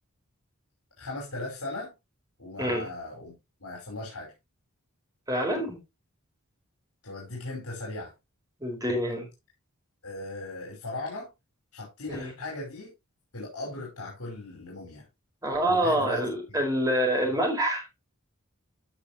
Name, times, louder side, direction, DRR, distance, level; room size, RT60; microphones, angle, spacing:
voice 1, 1.0-1.9 2.4-4.3 7.0-8.1 10.0-11.3 11.7-12.9 13.3-15.1 15.7-16.6, left 2 dB, 80° left, 5.3 m, -38 dB
voice 2, 5.3-5.8 8.6-9.3 12.1-12.3 15.4-17.8, right 1 dB, 15° right, 4.2 m, -26 dB
15.0 x 6.2 x 3.1 m
head